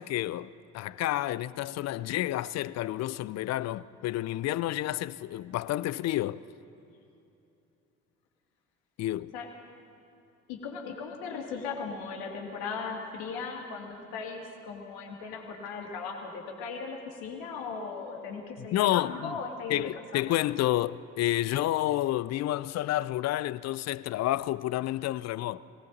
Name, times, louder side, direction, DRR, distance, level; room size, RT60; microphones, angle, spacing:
voice 1, 0.0-6.4 9.0-9.3 18.7-19.3 19.7-25.6, left 14 dB, 45° left, 0.4 m, -30 dB
voice 2, 10.5-20.2, left 5 dB, 70° left, 2.2 m, -38 dB
18.5 x 17.5 x 4.0 m
hypercardioid pair, 55°, 40 cm